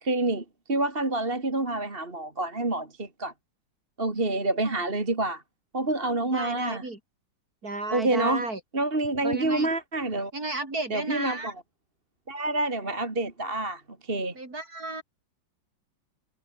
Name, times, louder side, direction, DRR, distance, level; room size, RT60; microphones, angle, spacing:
voice 1, 0.0-3.3 4.0-5.4 5.7-6.8 7.9-8.4 8.7-10.3 10.9-11.5 12.3-14.3, right 2 dB, 25° right, 3.0 m, -28 dB
voice 2, 6.3-7.0 7.6-8.6 9.2-9.7 10.3-11.5 14.3-15.0, right 2 dB, 45° right, 5.6 m, -33 dB
omnidirectional pair, 2.2 m